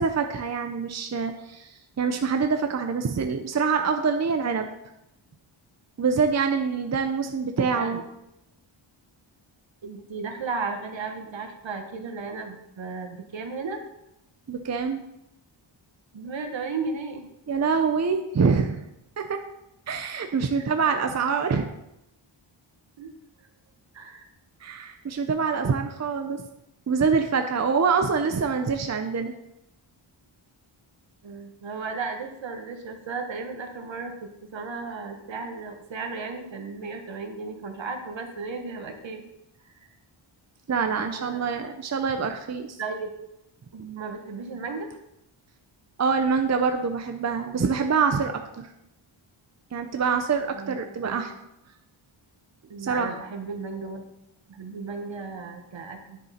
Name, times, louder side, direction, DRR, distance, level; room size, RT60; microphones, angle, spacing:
voice 1, 0.0-4.7 6.0-8.0 14.5-15.0 17.5-18.8 19.2-19.4 19.9-21.7 24.6-26.4 26.9-29.3 40.7-42.8 46.0-48.7 49.7-51.3 52.8-53.1, right 5 dB, 35° right, 6 dB, 0.6 m, -25 dB
voice 2, 7.6-8.0 9.8-13.8 16.1-17.3 20.5-20.7 23.0-23.1 23.9-24.3 31.2-39.2 39.6-39.9 41.2-41.6 42.8-43.1 43.7-44.9 50.5-51.2 52.7-54.0 54.5-56.2, right 4 dB, 65° right, 5 dB, 1.3 m, -35 dB
9.9 x 6.8 x 4.3 m, 0.86 s
wide cardioid pair, 140°, 48 cm